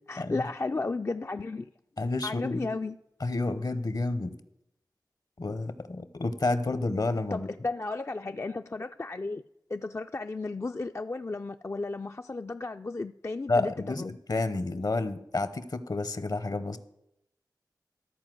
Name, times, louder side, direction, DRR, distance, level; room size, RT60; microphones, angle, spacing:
voice 1, 0.1-1.7 2.2-3.0 7.3-9.4 9.7-14.2, left 3 dB, 35° left, 0.3 m, -34 dB
voice 2, 2.0-2.7 3.2-4.3 5.4-7.5 13.5-16.8, left 2 dB, 60° left, 0.9 m, -30 dB
13.0 x 4.5 x 7.7 m
cardioid pair, 40°, 7 cm